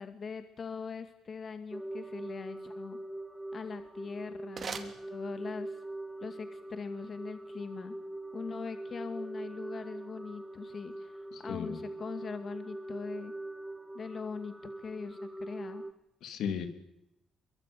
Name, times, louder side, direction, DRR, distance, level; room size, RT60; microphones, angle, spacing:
voice 1, 0.0-3.0 3.5-5.8 6.2-8.0 8.3-13.3 13.9-15.8, left 5 dB, 45° left, 9 dB, 2.0 m, -41 dB
sound 1, 1.7-15.9, right 1 dB, 10° right, 1.5 m, -42 dB
sound 2, 3.6-5.8, right 5 dB, 45° right, 3.0 m, -44 dB
voice 2, 11.3-11.8 16.2-16.7, left 7 dB, 80° left, 8 dB, 3.3 m, -36 dB
23.5 x 23.0 x 9.3 m, 0.84 s
cardioid pair, 90°, 0 cm